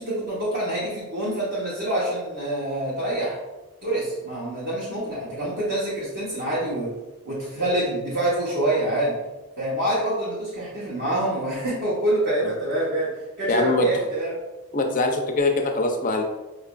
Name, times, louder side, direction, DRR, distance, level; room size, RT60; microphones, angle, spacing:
voice 1, 0.0-3.4 3.8-6.9 7.2-9.2 9.6-13.1 13.4-14.4, right 1 dB, 50° right, -8 dB, 0.8 m, -26 dB
voice 2, 13.5-13.9 14.7-16.2, left 2 dB, 35° left, 3 dB, 0.4 m, -22 dB
4.9 x 2.4 x 2.2 m, 1.1 s
head